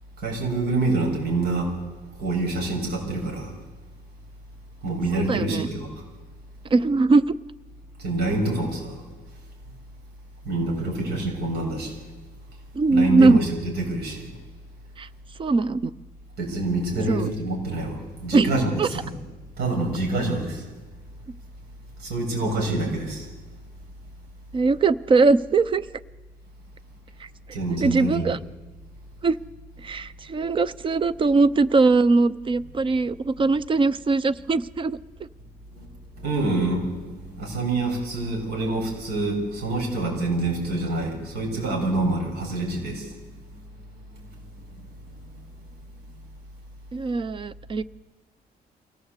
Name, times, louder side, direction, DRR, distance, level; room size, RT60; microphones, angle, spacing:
voice 1, 0.2-1.7 2.2-3.5 4.8-5.9 8.0-9.0 10.4-12.0 12.9-14.3 16.4-19.1 19.6-20.6 22.0-23.3 27.5-28.3 35.8-35.9 36.2-43.1, right 2 dB, 85° right, 1 dB, 7.0 m, -26 dB
voice 2, 5.1-5.7 6.7-7.3 12.7-13.4 15.0-15.1 15.4-15.9 17.1-17.3 18.3-18.9 24.5-25.9 27.5-28.4 29.2-29.4 29.8-35.0 46.9-47.8, right 3 dB, 30° right, 17 dB, 0.6 m, -21 dB
24.0 x 17.0 x 8.2 m, 1.3 s
cardioid pair, 155°, 16 cm